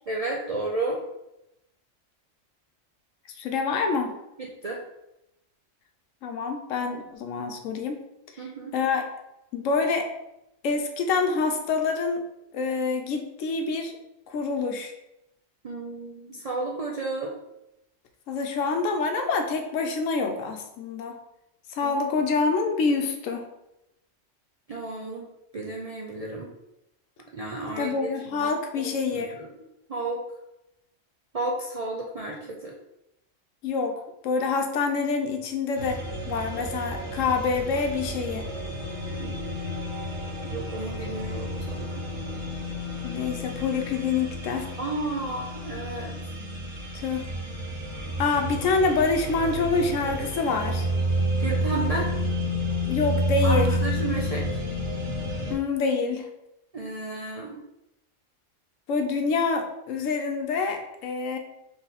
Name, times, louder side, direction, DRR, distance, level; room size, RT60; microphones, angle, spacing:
voice 1, 0.1-1.0 4.4-4.8 8.4-8.7 15.6-17.3 21.8-21.9 24.7-26.5 27.3-28.5 28.8-29.5 29.9-30.2 31.3-32.8 39.2-39.4 40.5-42.0 44.8-46.1 51.4-52.1 53.4-54.6 56.7-57.6, right 2 dB, 50° right, -2 dB, 0.4 m, -32 dB
voice 2, 3.4-4.1 6.2-8.0 8.4-9.1 9.5-10.1 10.6-12.2 12.5-13.9 14.3-14.9 18.3-21.1 21.7-23.5 27.8-29.4 33.6-38.5 43.0-44.7 47.0-47.3 48.2-50.9 52.9-53.8 55.5-56.3 58.9-61.4, left 4 dB, 85° left, 5 dB, 1.1 m, -26 dB
sound 1, 35.8-55.5, equal, 75° right, 1.5 m, -30 dB
3.9 x 3.4 x 4.0 m, 0.88 s
omnidirectional pair, 1.3 m